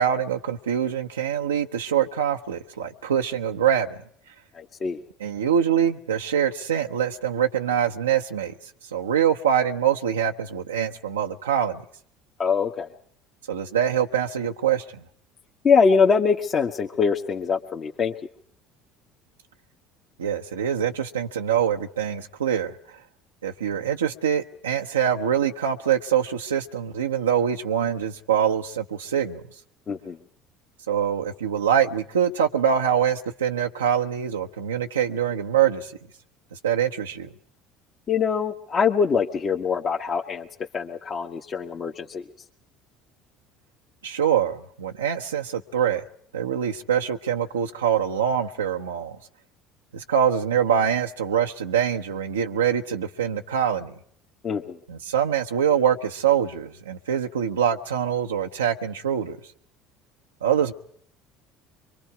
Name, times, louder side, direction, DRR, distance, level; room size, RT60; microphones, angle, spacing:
voice 1, 0.0-4.0 5.2-8.5 8.9-11.8 13.5-15.0 20.2-22.7 23.4-29.4 30.9-35.9 36.6-37.3 44.0-46.0 46.3-49.2 49.9-53.9 54.9-59.4 60.4-60.7, right 8 dB, 90° right, 0.8 m, -24 dB
voice 2, 4.5-5.0 12.4-12.9 15.6-18.1 29.9-30.2 38.1-40.5 40.7-42.2 54.4-54.8, left 5 dB, 40° left, 1.4 m, -23 dB
24.5 x 24.0 x 4.8 m
hypercardioid pair, 65°, 0 cm